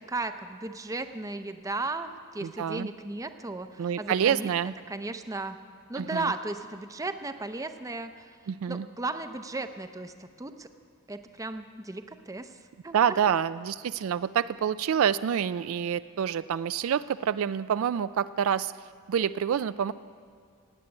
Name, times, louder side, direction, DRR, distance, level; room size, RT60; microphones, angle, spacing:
voice 1, 0.1-4.5 4.9-5.6 5.9-8.3 8.7-10.7 11.1-12.5 12.8-12.9 13.3-13.4, right 2 dB, 15° right, 9 dB, 0.6 m, -35 dB
voice 2, 2.4-2.9 3.8-4.7 6.0-6.3 8.5-8.9 12.9-18.7 19.1-19.9, right 8 dB, 65° right, 14 dB, 0.3 m, -27 dB
18.0 x 8.2 x 8.8 m, 2.3 s
head